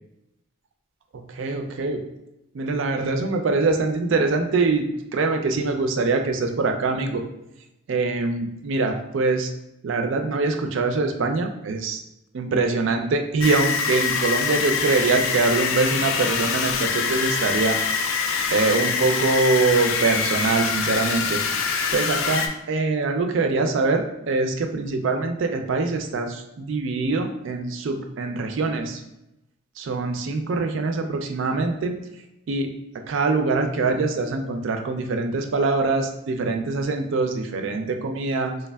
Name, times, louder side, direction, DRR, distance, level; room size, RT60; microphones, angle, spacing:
voice 1, 1.1-2.1 2.5-4.9 5.1-7.2 7.9-9.5 9.8-12.0 12.3-17.8 18.5-21.4 21.9-29.0 29.8-31.9 32.5-38.5, right 3 dB, 65° right, 5 dB, 0.4 m, -24 dB
sound 1, 13.4-22.5, left 5 dB, 80° left, 0.4 m, -24 dB
3.3 x 3.2 x 2.2 m, 0.88 s
head